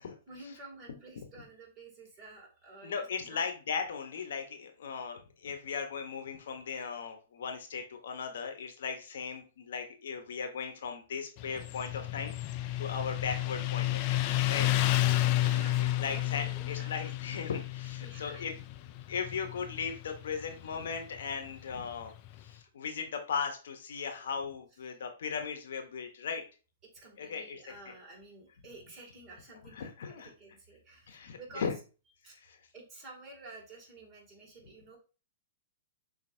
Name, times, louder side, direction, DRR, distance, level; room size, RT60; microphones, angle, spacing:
voice 1, 0.3-3.5 15.4-17.1 18.0-18.5 26.9-31.7 32.2-32.4 32.7-35.0, right 2 dB, 30° right, -1 dB, 2.2 m, -51 dB
voice 2, 2.8-14.7 16.0-18.5 19.1-22.1 22.4-26.4 27.2-27.9 29.7-30.3 31.1-31.7 32.2-32.6, left 6 dB, 70° left, 5 dB, 0.9 m, -37 dB
Motorcycle, 11.4-22.5, left 14 dB, 40° left, 0.4 m, -32 dB
6.9 x 2.8 x 2.6 m, 0.34 s
hypercardioid pair, 125°, 0 cm